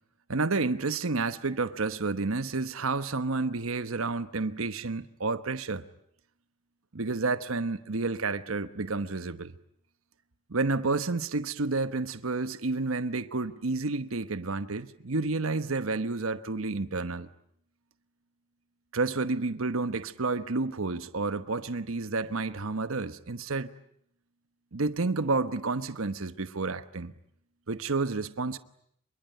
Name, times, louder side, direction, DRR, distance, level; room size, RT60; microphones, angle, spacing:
voice 1, 0.3-5.9 6.9-9.5 10.5-17.3 18.9-23.7 24.7-27.1 27.7-28.6, right 3 dB, 75° right, 1.0 m, -30 dB
27.0 x 23.5 x 9.1 m
head